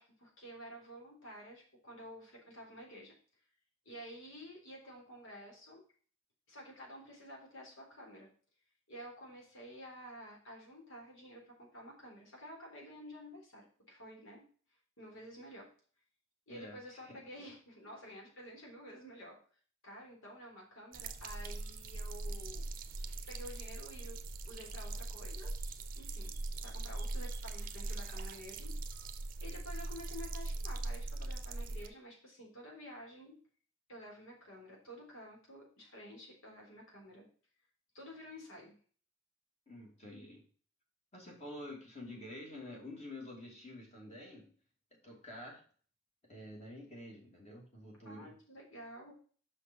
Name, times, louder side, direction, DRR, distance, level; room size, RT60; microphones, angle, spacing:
voice 1, 0.0-3.1 3.9-5.8 6.5-8.3 8.9-14.4 15.0-15.7 16.5-19.4 19.8-22.6 23.3-24.2 24.5-25.5 25.9-26.3 26.6-28.7 29.4-33.4 33.9-37.2 37.9-38.7 48.0-49.1, equal, 70° left, -2 dB, 3.8 m, -51 dB
voice 2, 16.5-17.2 39.7-40.4 41.1-44.5 44.9-45.6 46.3-48.3, left 1 dB, 30° left, -1 dB, 2.7 m, -49 dB
sound 1, 20.9-31.9, right 2 dB, 40° right, 0.7 m, -41 dB
6.0 x 5.7 x 5.4 m, 0.43 s
head